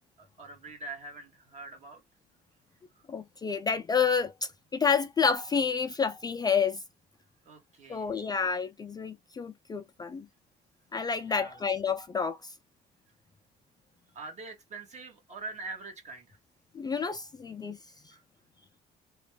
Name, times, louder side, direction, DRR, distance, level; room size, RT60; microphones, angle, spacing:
voice 1, 0.2-2.0 2.9-3.0 7.4-8.2 11.3-11.7 14.1-16.4 18.1-18.2, right 3 dB, 45° right, 1.5 m, -44 dB
voice 2, 3.1-6.8 7.9-10.3 10.9-12.5 16.7-17.8, left 6 dB, 25° left, 0.3 m, -29 dB
3.0 x 2.3 x 3.1 m
cardioid pair, 110°, 17 cm